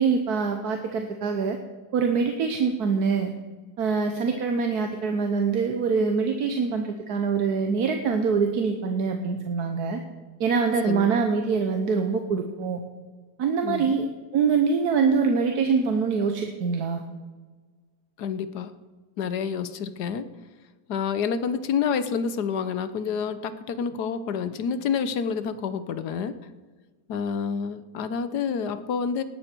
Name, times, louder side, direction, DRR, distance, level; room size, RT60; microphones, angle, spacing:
voice 1, 0.0-1.6 1.9-3.3 3.8-10.0 10.4-12.8 13.4-14.1 14.3-17.0, right 5 dB, 65° right, 5 dB, 1.5 m, -24 dB
voice 2, 13.6-14.0 18.2-18.7 19.2-20.3 20.9-26.3 27.1-29.2, left 6 dB, 70° left, 12 dB, 1.4 m, -28 dB
19.0 x 12.0 x 4.5 m, 1.4 s
omnidirectional pair, 1.8 m